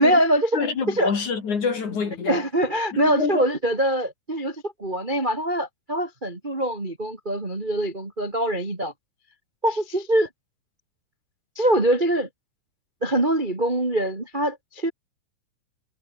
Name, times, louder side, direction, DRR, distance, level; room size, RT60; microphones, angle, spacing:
voice 1, 0.0-0.6 0.9-1.1 2.2-8.9 9.6-10.3 11.5-12.3 13.0-14.9, right 1 dB, 15° right, 1.5 m, -23 dB
voice 2, 0.5-2.4 2.9-3.4, left 5 dB, 40° left, 4.1 m, -26 dB
omnidirectional pair, 5.7 m